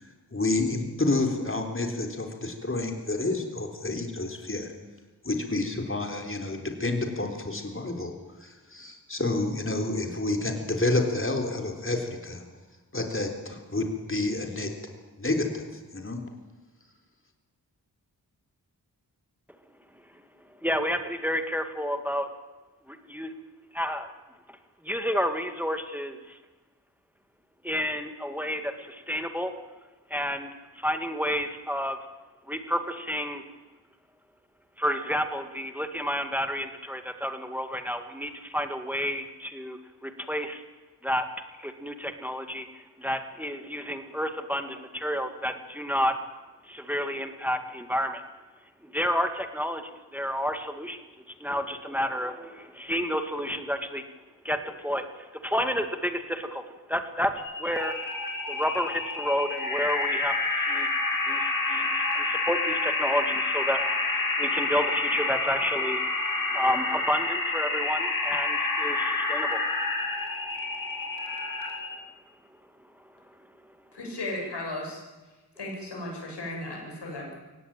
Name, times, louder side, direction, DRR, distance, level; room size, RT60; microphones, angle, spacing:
voice 1, 0.0-4.7 5.2-8.1 8.4-12.4 12.9-14.7 15.2-16.2, left 2 dB, 30° left, 3 dB, 3.8 m, -29 dB
voice 2, 20.6-22.3 22.9-23.3 23.7-24.1 24.8-26.4 27.6-29.5 30.1-30.5 30.8-32.0 32.5-33.4 34.8-40.6 41.0-41.2 41.6-46.1 46.7-48.2 48.9-51.0 51.4-54.0 54.4-56.6 56.9-57.3 57.6-58.1 58.5-60.9 61.3-66.1 66.5-69.6, equal, 5° right, 7 dB, 2.0 m, -30 dB
sound 1, 57.4-72.0, left 3 dB, 55° left, 5.1 m, -28 dB
voice 3, 73.9-75.0 75.6-77.3, left 1 dB, 85° left, -1 dB, 7.7 m, -35 dB
23.0 x 17.5 x 9.0 m, 1.2 s
cardioid pair, 50°, 40 cm